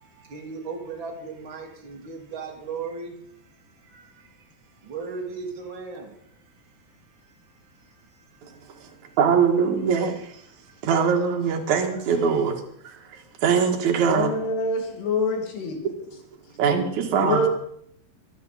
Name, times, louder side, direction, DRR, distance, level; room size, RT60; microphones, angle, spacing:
voice 1, 0.3-3.1 3.9-4.1 4.8-6.1, right 4 dB, 35° right, 1 dB, 2.3 m, -35 dB
voice 2, 9.2-10.3 10.8-12.6 12.8-14.3 16.6-17.4, right 6 dB, 55° right, 2 dB, 2.8 m, -22 dB
voice 3, 14.0-15.8 17.2-17.5, left 2 dB, 85° left, 2 dB, 4.5 m, -25 dB
24.0 x 9.8 x 4.2 m, 0.68 s
omnidirectional pair, 4.6 m